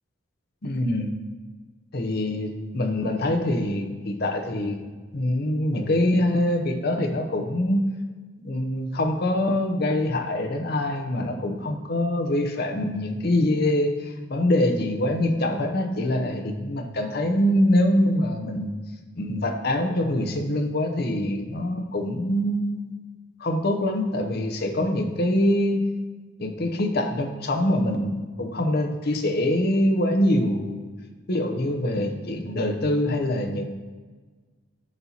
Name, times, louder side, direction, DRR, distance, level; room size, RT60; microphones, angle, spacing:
voice 1, 0.6-1.1 1.9-4.8 5.1-7.8 8.4-18.7 19.2-22.9 23.4-25.8 26.4-30.8 31.3-33.7, left 1 dB, 50° left, 4 dB, 0.7 m, -24 dB
11.0 x 4.3 x 2.8 m, 1.4 s
head